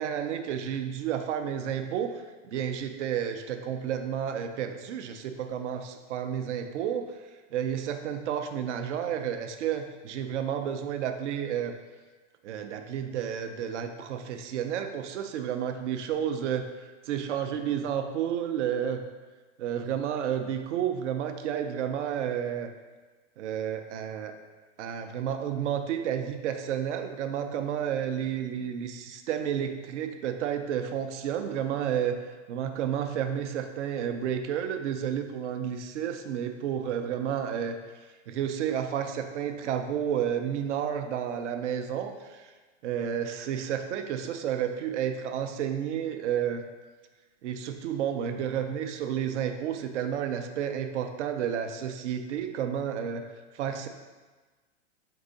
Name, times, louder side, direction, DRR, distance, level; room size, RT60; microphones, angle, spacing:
voice 1, 0.0-7.1 7.5-11.7 12.4-19.0 19.6-22.7 23.4-24.3 24.8-32.2 32.5-37.8 38.3-42.5 42.8-46.6 47.4-53.2 53.5-53.9, right 9 dB, 75° right, 7 dB, 0.6 m, -31 dB
4.7 x 2.7 x 4.0 m, 1.3 s
supercardioid pair, 150°, 36 cm